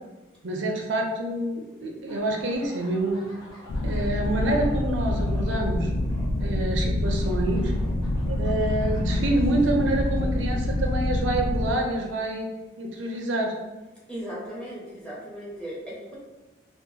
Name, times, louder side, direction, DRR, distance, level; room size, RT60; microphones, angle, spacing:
voice 1, 0.4-3.2 3.8-5.9 6.4-7.7 8.2-12.5 12.8-13.5, right 1 dB, 70° right, 1 dB, 0.5 m, -27 dB
sound 1, 2.1-11.6, equal, 25° left, 1.4 m, -48 dB
sound 2, 3.7-11.7, left 1 dB, 85° left, 0.4 m, -26 dB
voice 2, 14.1-16.2, equal, 5° left, -6 dB, 0.8 m, -37 dB
3.7 x 2.3 x 2.7 m, 1.1 s
head